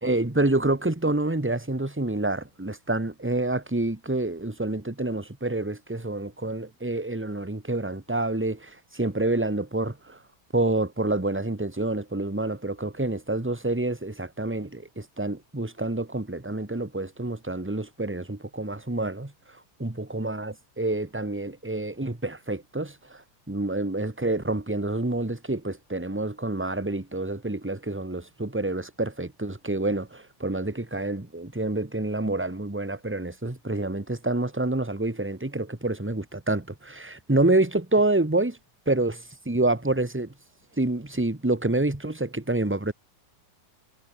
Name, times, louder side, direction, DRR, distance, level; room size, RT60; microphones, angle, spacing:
voice 1, 0.0-10.2 10.5-19.3 19.8-23.2 23.5-38.6 38.9-39.2 39.5-40.3 40.8-42.9, right 2 dB, 5° right, 1.5 m, -27 dB
omnidirectional pair, 2.1 m